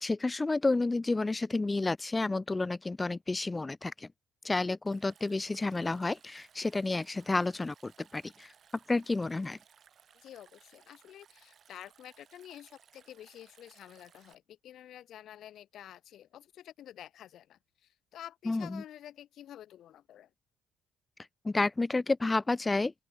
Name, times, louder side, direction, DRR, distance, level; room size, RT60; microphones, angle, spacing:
voice 1, 0.0-4.1 4.4-8.5 8.9-9.6 18.5-18.8 21.4-22.9, left 3 dB, 20° left, 0.3 m, -30 dB
Stream, 4.9-14.4, right 8 dB, 55° right, 3.2 m, -62 dB
voice 2, 10.1-20.3, left 11 dB, 70° left, 2.1 m, -50 dB
open air
supercardioid pair, 75°, 0 cm